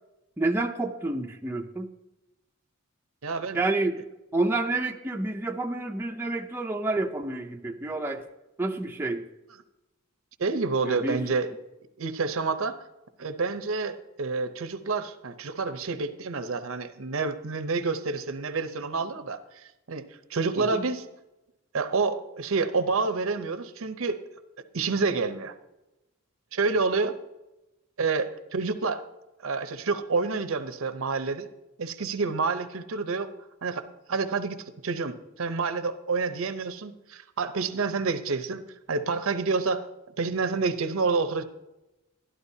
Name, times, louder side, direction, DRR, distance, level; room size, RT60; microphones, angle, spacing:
voice 1, 0.4-1.9 3.5-4.0 4.3-8.2 8.6-9.3 10.8-11.2 20.6-20.9, right 2 dB, 10° right, 2 dB, 0.5 m, -29 dB
voice 2, 3.2-3.6 10.4-11.5 12.0-12.8 13.2-21.0 21.7-24.2 24.7-25.5 26.5-27.2 28.0-29.0 29.4-31.5 31.8-33.3 33.6-33.8 34.1-39.8 40.2-41.4, right 4 dB, 70° right, 10 dB, 0.7 m, -28 dB
12.0 x 11.5 x 2.7 m, 0.98 s
head